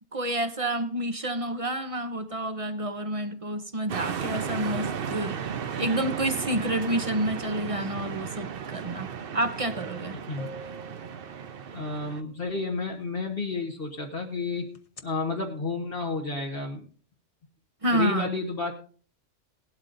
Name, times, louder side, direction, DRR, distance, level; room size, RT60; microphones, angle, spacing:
voice 1, 0.1-5.4 5.8-10.2 17.8-18.3, right 1 dB, 30° right, 0.9 m, -29 dB
sound 1, 3.9-12.2, right 7 dB, 55° right, 0.9 m, -35 dB
voice 2, 10.1-10.5 11.7-14.7 15.0-16.9 17.9-18.8, left 3 dB, 50° left, 1.5 m, -31 dB
sound 2, 10.4-12.1 14.7-15.0, right 2 dB, 30° left, 1.0 m, -45 dB
18.0 x 12.5 x 2.6 m
omnidirectional pair, 1.3 m